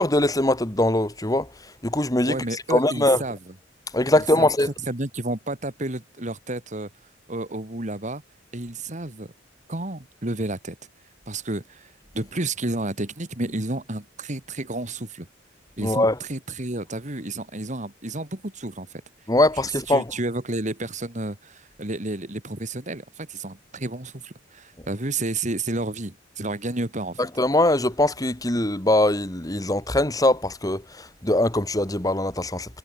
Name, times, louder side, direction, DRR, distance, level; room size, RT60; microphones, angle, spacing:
voice 1, 0.0-1.5 1.8-2.4 2.7-3.2 3.9-4.7 15.8-16.1 19.3-20.1 27.4-32.8, left 1 dB, 20° left, 2.4 m, -22 dB
voice 2, 2.2-3.5 4.1-4.5 4.9-6.9 7.3-8.2 8.5-9.3 9.7-10.8 11.3-15.3 15.8-19.0 19.9-27.3, right 2 dB, 40° right, 2.6 m, -31 dB
head